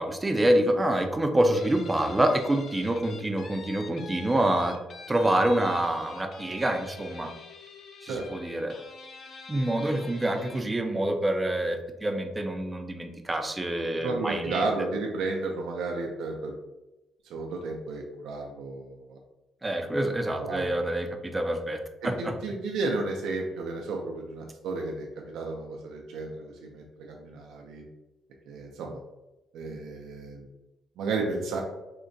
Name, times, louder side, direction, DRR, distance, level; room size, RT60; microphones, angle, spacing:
voice 1, 0.0-4.8 5.1-7.3 8.0-8.7 9.5-14.7 19.6-22.4, right 1 dB, 15° right, 5 dB, 0.4 m, -26 dB
Guitar, 1.5-10.8, left 4 dB, 55° left, 0.4 m, -46 dB
voice 2, 14.0-16.5 17.3-19.2 20.3-20.7 22.2-27.8 28.5-29.0 29.5-30.5 31.0-31.6, right 3 dB, 85° right, 0 dB, 0.4 m, -33 dB
3.7 x 2.1 x 2.6 m, 1.0 s
cardioid pair, 90°, 0 cm